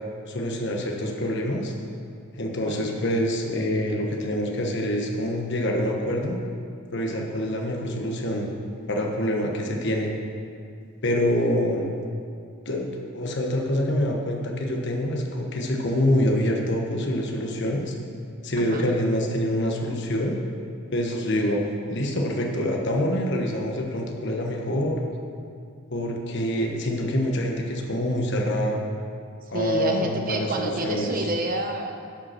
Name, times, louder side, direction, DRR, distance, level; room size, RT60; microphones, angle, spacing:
voice 1, 0.3-1.7 2.4-6.4 6.9-8.5 8.9-10.1 11.0-11.9 12.6-17.9 18.4-20.4 20.9-25.0 25.9-28.8 29.5-31.1, left 1 dB, 55° left, 1 dB, 1.1 m, -26 dB
voice 2, 18.6-18.9 29.4-31.9, right 1 dB, 40° right, 3 dB, 0.9 m, -29 dB
10.5 x 5.4 x 5.9 m, 2.3 s
head